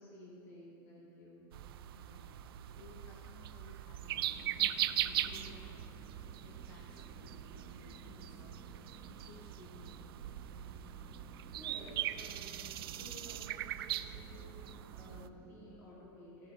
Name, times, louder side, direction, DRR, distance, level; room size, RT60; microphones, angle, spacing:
voice 1, 0.0-1.5 11.6-16.5, equal, 20° left, -6 dB, 2.2 m, -54 dB
sound 1, 1.5-15.3, right 12 dB, 70° right, 0.4 m, -40 dB
voice 2, 1.9-2.5 2.7-4.8 5.0-8.7 9.1-10.0, left 4 dB, 90° left, -2 dB, 1.7 m, -58 dB
sound 2, 4.0-15.8, right 3 dB, ahead, 0.7 m, -56 dB
15.5 x 8.3 x 3.9 m, 2.5 s
supercardioid pair, 175°, 13 cm